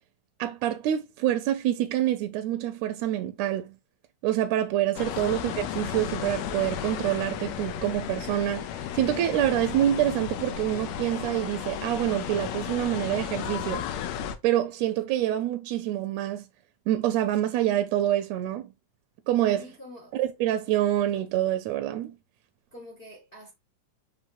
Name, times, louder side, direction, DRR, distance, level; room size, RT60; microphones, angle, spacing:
voice 1, 0.4-3.8 4.2-13.8 14.4-16.4 16.9-18.7 19.3-19.6 20.1-22.2, right 12 dB, 80° right, 1.7 m, -26 dB
sound 1, 5.0-14.4, left 9 dB, 75° left, 1.8 m, -34 dB
voice 2, 5.1-5.6 19.6-20.2 22.7-23.5, left 1 dB, 35° left, 0.8 m, -47 dB
5.9 x 3.5 x 2.4 m
omnidirectional pair, 3.3 m